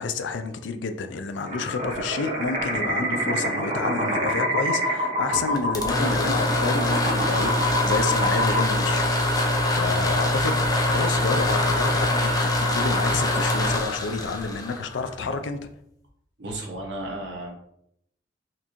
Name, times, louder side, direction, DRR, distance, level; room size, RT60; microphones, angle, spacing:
voice 1, 0.0-9.1 9.7-15.6, left 4 dB, 80° left, 8 dB, 0.4 m, -29 dB
sound 1, 1.4-9.9, equal, 40° right, 1.1 m, -27 dB
sound 2, 5.6-15.4, left 1 dB, 20° left, 0.5 m, -24 dB
voice 2, 16.4-17.5, right 1 dB, 70° right, -1 dB, 1.1 m, -33 dB
4.2 x 2.6 x 2.9 m, 0.75 s
head